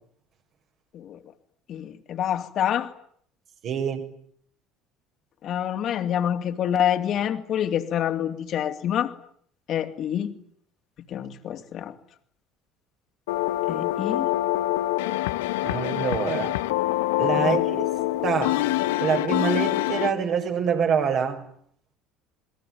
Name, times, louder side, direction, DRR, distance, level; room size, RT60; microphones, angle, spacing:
voice 1, 1.7-2.9 5.4-9.1 9.7-10.3 11.1-12.0 13.7-14.3 17.4-17.6, left 10 dB, 50° left, 3.3 m, -27 dB
voice 2, 3.6-4.1 15.6-16.6 17.2-17.8 18.2-18.6 19.0-21.4, right 7 dB, 50° right, 6.9 m, -25 dB
sound 1, 13.3-20.1, left 16 dB, 70° left, 1.2 m, -25 dB
28.5 x 22.0 x 9.6 m
figure-of-eight pair, 65°, 0 cm